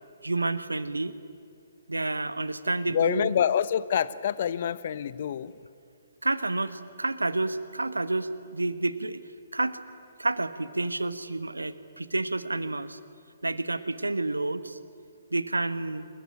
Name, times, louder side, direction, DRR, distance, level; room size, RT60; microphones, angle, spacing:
voice 1, 0.2-1.1 1.9-3.3 6.2-9.2 9.5-9.8 10.2-13.0 13.4-14.8 15.3-16.1, right 2 dB, 75° right, 13 dB, 1.3 m, -29 dB
voice 2, 2.9-5.5, left 9 dB, 45° left, 17 dB, 0.9 m, -26 dB
27.0 x 22.0 x 10.0 m, 2.4 s
figure-of-eight pair, 130°, 0 cm